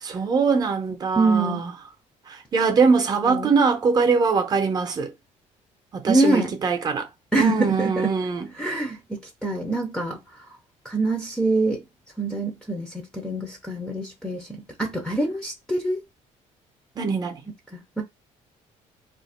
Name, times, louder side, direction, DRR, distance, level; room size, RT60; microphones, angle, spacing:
voice 1, 0.0-1.7 2.3-5.1 5.9-7.1 7.4-8.5 17.0-17.4, right 5 dB, 30° right, 0.7 m, -22 dB
voice 2, 1.2-1.6 3.2-3.5 6.1-6.5 7.3-8.1 8.6-10.2 10.8-11.8 12.2-16.0 17.7-18.0, right 2 dB, 5° left, 0.6 m, -25 dB
2.8 x 2.5 x 4.2 m
cardioid pair, 155°, 13 cm